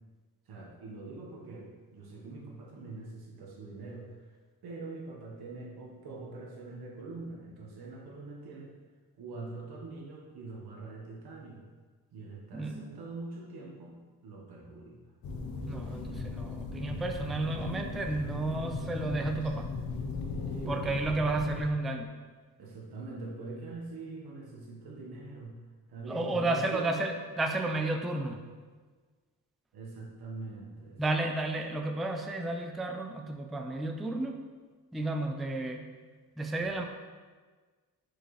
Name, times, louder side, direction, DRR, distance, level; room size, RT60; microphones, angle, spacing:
voice 1, 0.5-4.1 4.6-8.7 9.2-11.6 12.1-13.9 14.2-15.0 20.5-21.1 22.6-25.6 25.9-26.9 29.7-31.0, right 3 dB, 85° right, -2 dB, 1.4 m, -43 dB
voice 2, 12.5-12.9 15.6-19.7 20.7-22.1 26.1-28.4 31.0-34.4 34.9-35.9 36.4-36.9, right 2 dB, ahead, 4 dB, 0.3 m, -32 dB
sound 1, 15.2-21.6, left 3 dB, 70° left, 0.9 m, -37 dB
6.3 x 4.9 x 3.2 m, 1.4 s
cardioid pair, 120°, 37 cm